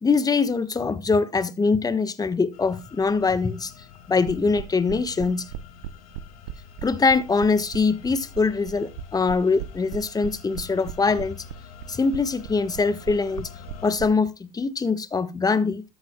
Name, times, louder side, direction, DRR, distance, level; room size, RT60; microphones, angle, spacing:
voice 1, 0.0-3.7 4.1-5.4 6.8-11.4 11.9-13.5 13.8-15.8, left 4 dB, 20° left, 1.3 m, -23 dB
sound 1, 2.5-13.9, left 7 dB, 80° left, 2.3 m, -46 dB
sound 2, 4.3-14.1, right 12 dB, 80° right, 0.8 m, -36 dB
13.5 x 7.9 x 2.3 m
hypercardioid pair, 80°, 18 cm